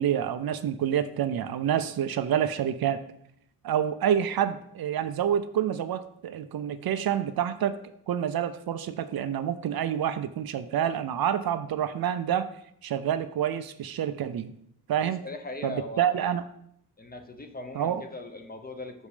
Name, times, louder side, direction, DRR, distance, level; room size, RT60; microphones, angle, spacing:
voice 1, 0.0-3.0 3.6-7.8 8.1-12.5 12.8-14.5 14.9-15.2 15.6-16.4 17.7-18.0, right 9 dB, 70° right, 12 dB, 0.6 m, -28 dB
voice 2, 15.0-16.2 17.0-19.1, left 2 dB, 25° left, 5 dB, 0.8 m, -40 dB
6.5 x 5.3 x 4.9 m, 0.70 s
wide cardioid pair, 135°, 38 cm